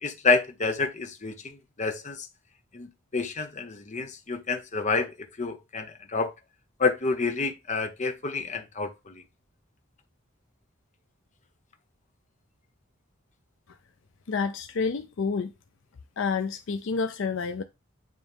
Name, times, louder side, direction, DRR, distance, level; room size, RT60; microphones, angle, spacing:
voice 1, 0.0-2.3 2.7-2.9 3.1-5.1 5.4-6.3 6.8-9.2, left 4 dB, 35° left, 0.8 m, -28 dB
voice 2, 14.3-15.5 16.2-17.6, left 5 dB, 60° left, 0.5 m, -29 dB
9.3 x 3.1 x 3.5 m
head